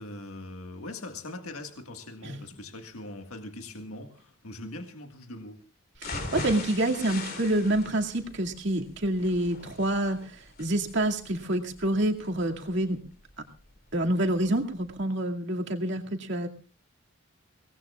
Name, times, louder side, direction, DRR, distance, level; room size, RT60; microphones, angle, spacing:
voice 1, 0.0-5.6, left 2 dB, 85° left, 5 dB, 1.8 m, -41 dB
sound 1, 5.9-13.9 14.3-14.4 14.8-14.9, left 3 dB, 45° left, 3.1 m, -40 dB
voice 2, 6.0-13.0 13.9-16.5, right 1 dB, 55° right, 2 dB, 2.3 m, -27 dB
24.5 x 18.5 x 2.4 m, 0.36 s
head